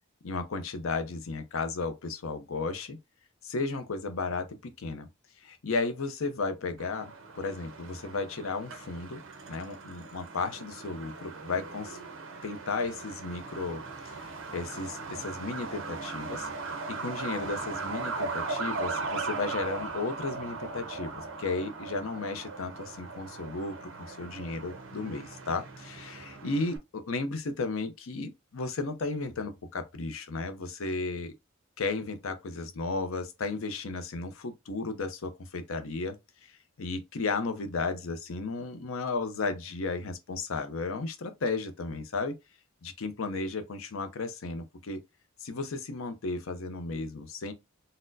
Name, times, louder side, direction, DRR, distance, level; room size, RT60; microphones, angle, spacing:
voice 1, 0.2-3.0 3.4-5.1 5.4-9.2 9.5-12.0 12.4-16.5 17.0-31.3 31.8-36.2 36.8-42.3 42.8-45.0 45.4-47.5, left 3 dB, 75° left, 0.6 m, -34 dB
Truck, 6.8-26.8, right 3 dB, 65° right, 0.7 m, -39 dB
4.1 x 2.1 x 2.6 m
head